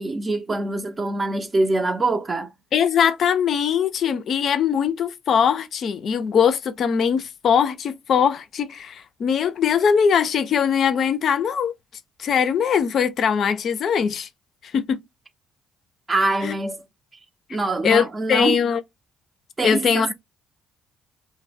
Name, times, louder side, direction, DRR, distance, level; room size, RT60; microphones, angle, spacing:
voice 1, 0.0-2.5 16.1-16.8 17.5-18.6 19.6-20.1, right 2 dB, 30° right, 0.5 m, -24 dB
voice 2, 2.7-11.7 12.2-14.3 14.7-15.0 16.4-16.5 17.8-18.8 19.6-20.1, left 7 dB, 60° left, 0.4 m, -21 dB
2.1 x 2.0 x 3.2 m
supercardioid pair, 60°, 0 cm